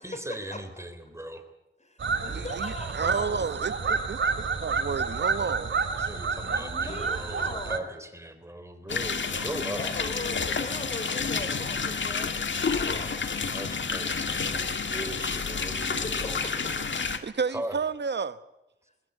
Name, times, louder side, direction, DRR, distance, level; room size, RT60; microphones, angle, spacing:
voice 1, 0.0-1.4 6.0-9.9 13.4-16.8 17.5-17.8, right 1 dB, 15° right, 3.5 m, -39 dB
voice 2, 1.8-3.5 6.4-7.9 9.8-13.2 16.0-16.3, left 1 dB, 35° left, 3.9 m, -40 dB
sound 1, 2.0-7.8, right 4 dB, 80° right, 2.6 m, -29 dB
voice 3, 2.3-5.7 17.2-18.4, right 5 dB, 65° right, 1.1 m, -31 dB
sound 2, 8.9-17.2, left 5 dB, 75° left, 1.7 m, -30 dB
21.0 x 21.0 x 8.2 m
cardioid pair, 60°, 19 cm